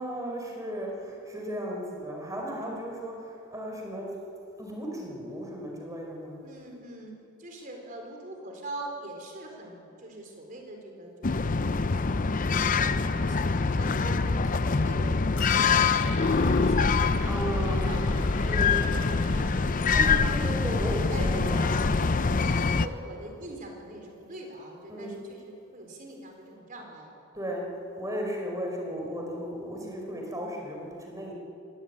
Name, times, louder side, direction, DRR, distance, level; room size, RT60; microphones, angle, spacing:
voice 1, 0.0-4.1 4.6-6.4 14.0-14.2 17.2-17.9 18.4-18.8 19.9-21.7 22.0-22.3 24.9-25.1 27.3-27.6 28.0-31.3, equal, 15° right, 0 dB, 4.7 m, -35 dB
voice 2, 6.4-7.1 7.4-14.1 14.5-16.0 16.4-18.6 19.1-20.2 20.7-21.4 22.2-27.1 29.7-30.2, right 2 dB, 40° right, 2 dB, 4.3 m, -44 dB
sound 1, 11.2-22.9, left 4 dB, 40° left, 0.6 m, -25 dB
Squeak, 14.4-19.7, left 2 dB, 70° left, 5.6 m, -44 dB
23.0 x 18.0 x 8.8 m, 2.7 s
head